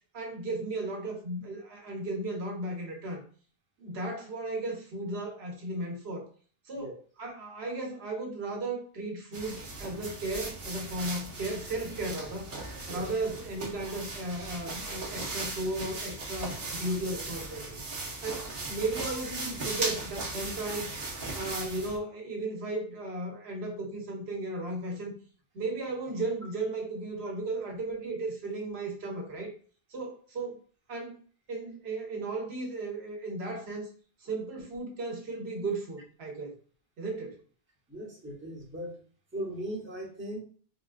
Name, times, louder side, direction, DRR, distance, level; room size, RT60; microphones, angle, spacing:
voice 1, 0.1-3.2 3.8-6.3 6.7-6.9 7.2-12.5 12.9-17.8 18.2-20.9 21.3-25.2 25.5-29.5 29.9-30.6 30.9-31.2 31.5-33.9 34.2-36.5 37.0-37.4, right 2 dB, 85° right, 1 dB, 1.1 m, -35 dB
sound 1, 9.3-22.0, right 2 dB, 55° right, 0.9 m, -38 dB
voice 2, 37.9-39.0 39.3-40.4, right 1 dB, 10° right, -4 dB, 0.9 m, -38 dB
3.6 x 2.3 x 2.4 m, 0.43 s
omnidirectional pair, 1.0 m